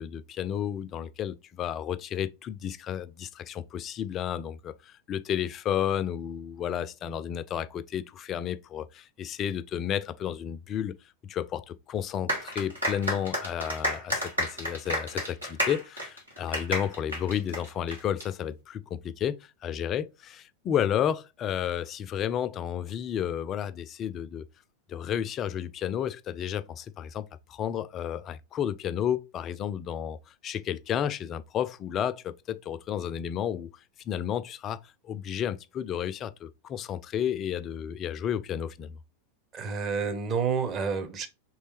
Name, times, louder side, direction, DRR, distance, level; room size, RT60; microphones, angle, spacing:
voice 1, 0.0-11.0 11.2-24.5 24.9-33.7 34.1-34.8 35.0-39.0, left 9 dB, 30° left, 0.3 m, -32 dB
sound 1, 12.3-18.2, equal, 85° right, 1.7 m, -31 dB
voice 2, 39.5-41.3, right 5 dB, 30° right, 0.7 m, -29 dB
4.1 x 3.3 x 3.2 m
figure-of-eight pair, 90°, 0 cm